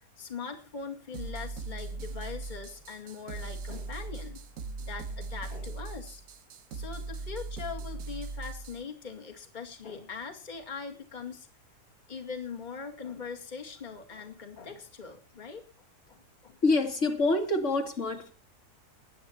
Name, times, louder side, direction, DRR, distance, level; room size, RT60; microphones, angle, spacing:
voice 1, 0.2-4.4 4.8-6.2 6.7-11.5 12.1-15.6 16.1-16.6, left 5 dB, 30° left, 3 dB, 2.4 m, -41 dB
sound 1, 1.1-8.8, right 3 dB, 60° right, 1.3 m, -39 dB
voice 2, 16.6-18.3, left 2 dB, 45° left, 4 dB, 2.8 m, -26 dB
20.0 x 10.0 x 4.4 m, 0.37 s
omnidirectional pair, 1.7 m